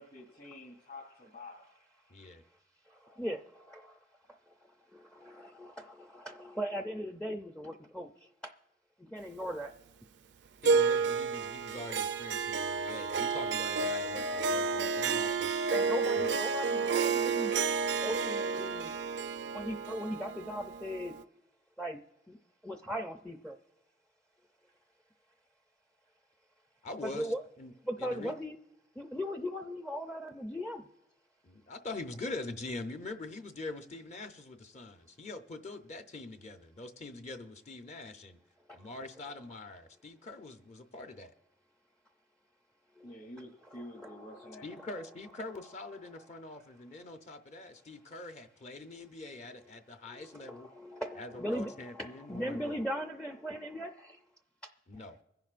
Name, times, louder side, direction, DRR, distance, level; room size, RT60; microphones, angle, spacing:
voice 1, 0.0-1.6 43.0-44.7, left 1 dB, 60° left, -3 dB, 3.4 m, -48 dB
voice 2, 2.1-2.4 10.6-15.6 16.2-16.3 26.8-27.7 28.0-28.4 31.4-38.4 38.7-41.3 44.6-50.7 51.2-52.7 54.9-55.2, left 2 dB, 40° left, 7 dB, 0.7 m, -44 dB
voice 3, 2.9-4.0 4.9-8.1 9.0-9.7 13.8-13.9 14.8-14.9 15.7-17.6 18.0-18.9 19.5-21.1 21.8-22.0 22.3-22.4 22.6-23.6 27.0-27.4 27.9-28.6 29.0-30.9 38.7-38.8 43.0-43.1 43.6-44.9 50.1-54.2, equal, 5° left, 5 dB, 0.4 m, -39 dB
Harp, 10.6-21.2, right 5 dB, 70° right, 0.4 m, -31 dB
24.5 x 10.5 x 2.5 m, 0.89 s
head